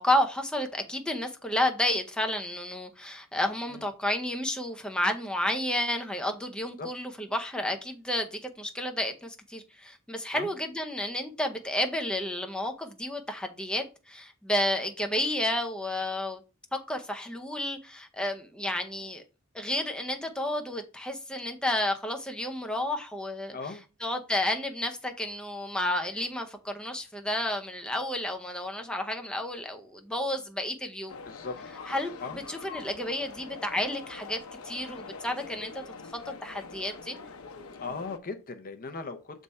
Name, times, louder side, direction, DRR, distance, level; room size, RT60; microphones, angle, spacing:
voice 1, 0.0-16.4 16.7-19.2 19.5-23.6 24.0-31.2 31.9-35.8 36.4-37.2, left 1 dB, 5° left, 0.7 m, -31 dB
voice 2, 23.5-23.8 31.2-31.6 32.2-32.4 37.8-39.4, left 4 dB, 40° left, 0.7 m, -38 dB
sound 1, 31.1-38.2, left 4 dB, 80° left, 0.9 m, -44 dB
6.5 x 3.5 x 4.2 m
head